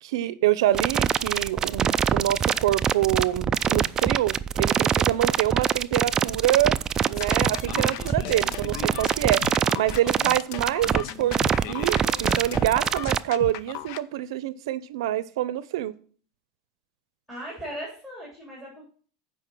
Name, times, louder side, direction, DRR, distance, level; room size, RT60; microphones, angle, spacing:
voice 1, 0.0-6.7 7.1-15.9, right 13 dB, 85° right, 16 dB, 0.6 m, -26 dB
sound 1, 0.7-13.2, right 7 dB, 25° right, 0.3 m, -24 dB
sound 2, 7.1-14.0, left 12 dB, 60° left, 0.5 m, -37 dB
voice 2, 17.3-18.8, equal, 10° left, -4 dB, 3.5 m, -38 dB
7.7 x 5.1 x 6.5 m, 0.43 s
supercardioid pair, 135°, 3 cm